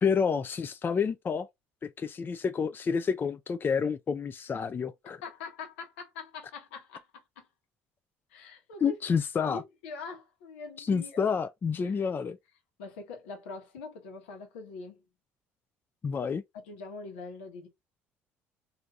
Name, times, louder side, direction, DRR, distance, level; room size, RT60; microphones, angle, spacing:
voice 1, 0.0-1.5 1.8-5.2 8.8-9.6 10.8-12.4 16.0-16.4, left 6 dB, 35° left, 0.4 m, -29 dB
voice 2, 5.2-7.5 8.3-9.0 9.4-11.3 11.8-12.0 12.8-15.0 16.6-17.7, left 4 dB, 85° left, 1.1 m, -43 dB
3.2 x 2.7 x 2.4 m
hypercardioid pair, 65°, 6 cm